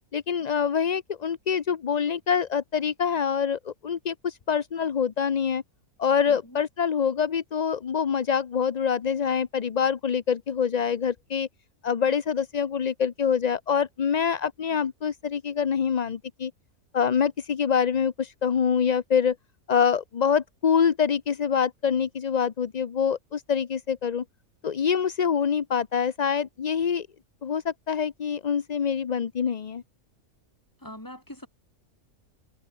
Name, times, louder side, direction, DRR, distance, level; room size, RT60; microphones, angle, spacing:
voice 1, 0.1-5.6 6.0-11.5 11.8-16.5 16.9-19.4 19.7-24.2 24.6-27.1 27.4-29.8, left 7 dB, 40° left, 0.6 m, -25 dB
voice 2, 6.3-6.6 30.8-31.5, left 1 dB, 15° left, 4.9 m, -43 dB
omnidirectional pair, 1.5 m